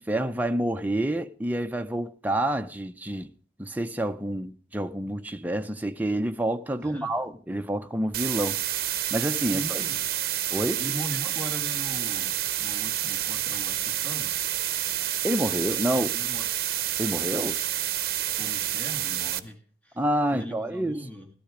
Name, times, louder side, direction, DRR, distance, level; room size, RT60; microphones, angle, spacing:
voice 1, 0.0-3.3 3.6-8.6 9.1-9.8 10.5-10.8 15.2-16.1 17.0-17.6 20.0-21.0, right 1 dB, 10° right, 0.6 m, -28 dB
voice 2, 6.8-7.2 9.5-10.1 10.8-14.6 15.9-16.5 18.4-20.0 20.3-21.3, equal, 5° left, 1.8 m, -40 dB
sound 1, 8.1-19.4, right 12 dB, 55° right, 0.8 m, -29 dB
13.5 x 13.5 x 4.9 m
head